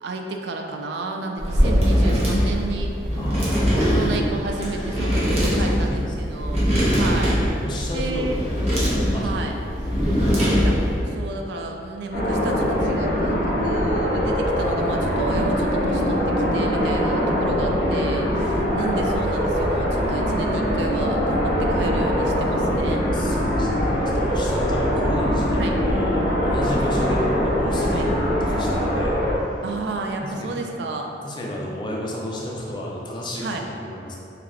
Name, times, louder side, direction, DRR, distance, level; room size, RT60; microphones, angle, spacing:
voice 1, 0.0-2.9 3.9-6.6 6.9-7.4 7.9-8.4 9.1-9.5 10.5-23.1 25.6-25.8 27.9-28.1 29.6-31.1 33.4-33.6, right 3 dB, 70° right, 3 dB, 0.3 m, -31 dB
sound 1, 1.4-11.0, equal, 35° right, 0.7 m, -21 dB
voice 2, 3.2-4.3 5.6-6.4 7.3-8.6 9.1-9.6 23.1-29.2 30.2-30.6 31.2-34.2, left 1 dB, 25° left, -2 dB, 0.4 m, -32 dB
sound 2, 12.1-29.3, equal, 55° left, 0.8 m, -22 dB
3.2 x 2.3 x 3.5 m, 2.8 s
head